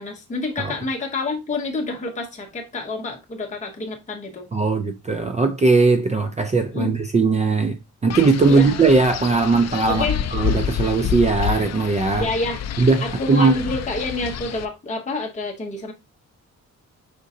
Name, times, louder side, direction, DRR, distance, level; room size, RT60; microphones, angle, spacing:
voice 1, 0.0-4.5 6.7-6.9 8.5-8.7 9.9-10.2 12.1-12.6 13.0-15.9, left 2 dB, 25° left, 0.8 m, -28 dB
voice 2, 4.5-7.8 8.0-10.1 10.3-12.3 12.8-13.5, right 3 dB, 25° right, 0.4 m, -19 dB
Wind, 8.1-14.7, left 8 dB, 60° left, 0.4 m, -28 dB
5.1 x 3.7 x 2.7 m
wide cardioid pair, 150°, 30 cm